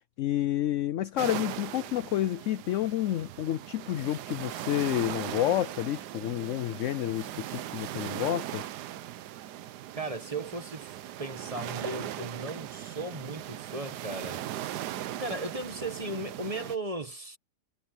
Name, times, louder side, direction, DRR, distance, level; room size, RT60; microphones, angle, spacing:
voice 1, 0.2-8.6, left 13 dB, 70° left, 0.7 m, -29 dB
sound 1, 1.2-16.8, right 12 dB, 90° right, 1.3 m, -39 dB
voice 2, 9.9-10.9 11.2-14.8 15.2-17.4, right 2 dB, 20° right, 1.6 m, -36 dB
omnidirectional pair, 1.7 m